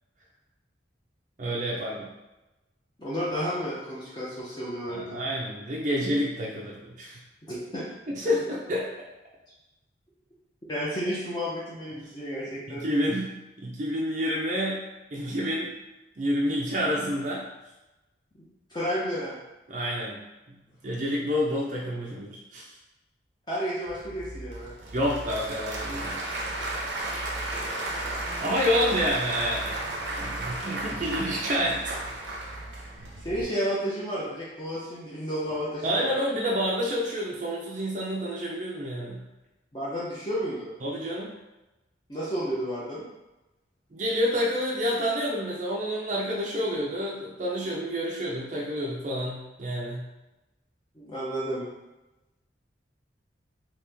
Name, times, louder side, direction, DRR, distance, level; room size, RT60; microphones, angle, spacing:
voice 1, 1.4-2.1 4.9-7.2 8.1-8.9 12.7-13.3 13.6-14.8 15.1-15.7 16.2-17.5 19.7-20.2 20.5-20.6 20.8-22.7 24.9-26.2 28.4-29.8 30.2-31.9 35.8-39.2 40.8-41.3 43.9-50.1, equal, 40° right, -4 dB, 0.4 m, -28 dB
voice 2, 3.0-5.2 7.5-7.8 8.2-8.3 10.7-12.9 18.7-19.4 23.5-24.7 33.2-36.2 39.7-40.7 42.1-43.1 51.0-51.7, equal, 25° left, -8 dB, 0.6 m, -31 dB
Applause / Crowd, 23.9-33.4, right 2 dB, 90° right, 0.7 m, -34 dB
2.9 x 2.9 x 3.4 m, 1.0 s
head